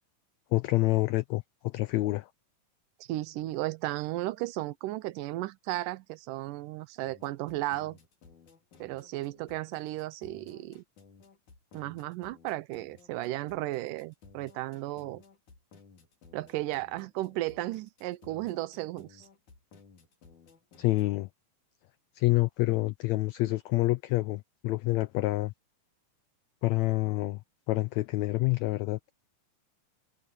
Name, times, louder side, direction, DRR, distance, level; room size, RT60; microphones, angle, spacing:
voice 1, 0.5-2.3 20.8-21.3 22.1-25.5 26.6-27.4 27.7-29.0, left 19 dB, 90° left, 1.5 m, -27 dB
voice 2, 3.0-8.0 8.8-10.8 11.7-15.2 16.3-19.3, right 17 dB, 80° right, 2.3 m, -34 dB
sound 1, 7.1-21.1, left 4 dB, 65° left, 4.7 m, -57 dB
omnidirectional pair, 3.7 m